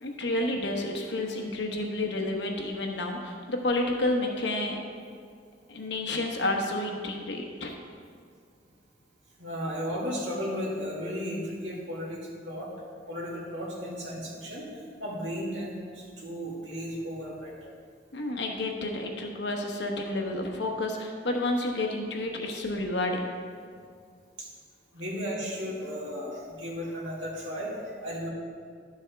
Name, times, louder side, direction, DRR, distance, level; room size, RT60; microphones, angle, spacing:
voice 1, 0.0-4.8 5.7-7.7 18.1-23.2, left 2 dB, 70° left, 2 dB, 1.1 m, -30 dB
voice 2, 9.4-12.7 13.1-17.5 24.4-24.5 24.9-28.3, equal, 80° right, -4 dB, 2.2 m, -35 dB
11.5 x 7.1 x 3.4 m, 2.1 s
head